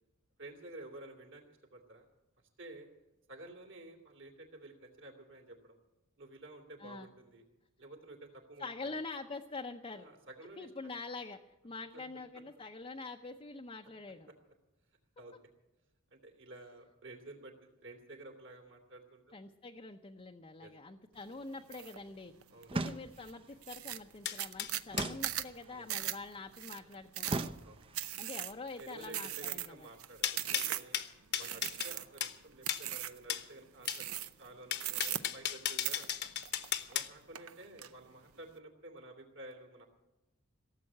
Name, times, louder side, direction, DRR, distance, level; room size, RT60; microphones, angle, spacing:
voice 1, 0.4-1.4 1.7-2.1 2.6-2.9 3.3-5.8 6.2-7.4 7.8-9.0 9.9-10.7 15.2-15.3 16.1-19.4 20.6-20.7 22.5-22.8 25.7-25.8 27.3-27.9 28.8-31.0 31.4-34.1 34.4-36.1 36.9-39.9, right 2 dB, 60° right, 2 dB, 3.0 m, -52 dB
voice 2, 8.6-10.1 10.6-14.3 19.3-22.3 22.7-27.3 28.2-29.9, left 3 dB, 25° left, 3 dB, 0.7 m, -45 dB
sound 1, 21.7-22.0 22.4-22.9 23.3-23.4 23.6-31.0 31.4-32.3 32.6-33.2 33.8-34.5 34.8-35.6 35.8-37.0 37.3-37.9, right 12 dB, 85° right, 0.7 m, -39 dB
sound 2, 22.7-23.4 24.9-25.9 27.2-28.1, right 2 dB, 25° right, 0.6 m, -38 dB
sound 3, 24.3-25.1 30.2-31.9 32.2-32.4 32.7-32.9 33.3-33.5 33.9-34.0 34.7-37.1, left 10 dB, 55° left, 1.0 m, -35 dB
17.0 x 7.6 x 9.8 m, 1.0 s
head